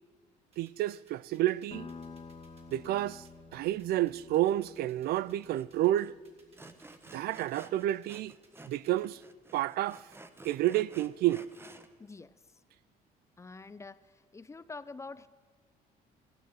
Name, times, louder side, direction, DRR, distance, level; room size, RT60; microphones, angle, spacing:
sound 1, 0.5-9.2, right 3 dB, 35° right, 3.3 m, -64 dB
voice 1, 0.6-1.9 2.7-3.2 3.5-6.1 7.1-8.3 8.7-9.2 9.5-10.1 10.4-11.4, right 14 dB, 65° right, 0.4 m, -30 dB
sound 2, 1.7-6.8, left 4 dB, 35° left, 1.6 m, -51 dB
Sawing, 5.5-5.6 6.0-6.1 6.6-8.8 9.0-11.9, right 2 dB, 15° right, 0.9 m, -52 dB
voice 2, 12.0-12.3 13.4-15.3, left 3 dB, 15° left, 0.5 m, -46 dB
15.5 x 12.0 x 7.6 m
cardioid pair, 110°, 17 cm